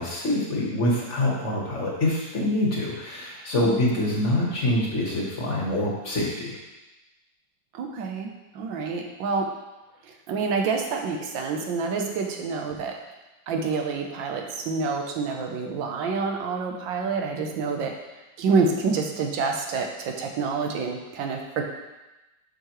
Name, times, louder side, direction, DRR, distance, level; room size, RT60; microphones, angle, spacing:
voice 1, 0.0-6.6, left 1 dB, 45° left, -3 dB, 1.4 m, -25 dB
voice 2, 3.6-3.9 7.7-9.5 10.0-13.0 13.5-17.9 18.4-21.6, right 4 dB, 90° right, 2 dB, 1.5 m, -27 dB
7.6 x 5.6 x 3.0 m, 1.1 s
omnidirectional pair, 2.0 m